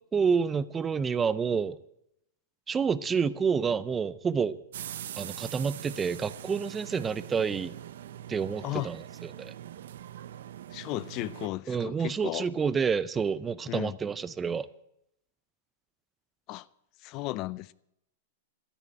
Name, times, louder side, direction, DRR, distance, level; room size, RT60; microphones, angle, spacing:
voice 1, 0.1-1.8 2.7-4.6 5.2-7.7 8.3-9.5 11.7-14.7, right 6 dB, 15° right, 0.6 m, -29 dB
sound 1, 4.7-11.5, right 11 dB, 75° right, 0.7 m, -42 dB
voice 2, 10.7-12.5 13.7-14.0 16.5-16.6 17.0-17.7, left 18 dB, 40° left, 0.5 m, -35 dB
13.0 x 11.0 x 9.0 m
hypercardioid pair, 140°, 0 cm